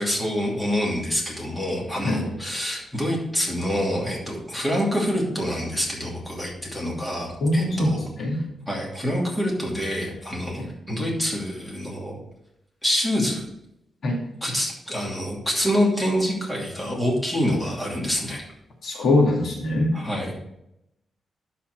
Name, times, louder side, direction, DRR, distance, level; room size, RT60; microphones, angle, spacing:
voice 1, 0.0-8.0 8.7-12.2 12.8-13.4 14.4-18.4 19.9-20.5, equal, 10° left, -3 dB, 2.6 m, -26 dB
voice 2, 7.4-8.4 10.6-10.7 14.0-14.2 18.8-19.9, left 1 dB, 65° left, -1 dB, 2.0 m, -22 dB
12.0 x 4.3 x 4.6 m, 0.82 s
cardioid pair, 115°, 0 cm